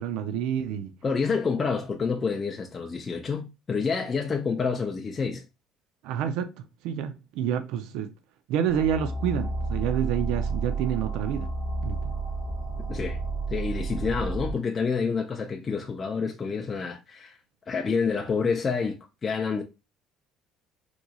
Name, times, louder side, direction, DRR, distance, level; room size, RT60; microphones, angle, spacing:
voice 1, 0.0-0.9 6.0-8.1 8.5-11.5 11.8-12.1, right 9 dB, 80° right, 0.4 m, -28 dB
voice 2, 1.0-5.4 12.9-13.2 13.5-17.4 17.7-19.6, left 5 dB, 20° left, 0.4 m, -28 dB
sound 1, 8.7-14.5, right 3 dB, 55° right, 1.6 m, -31 dB
3.9 x 3.0 x 2.3 m
cardioid pair, 175°, 0 cm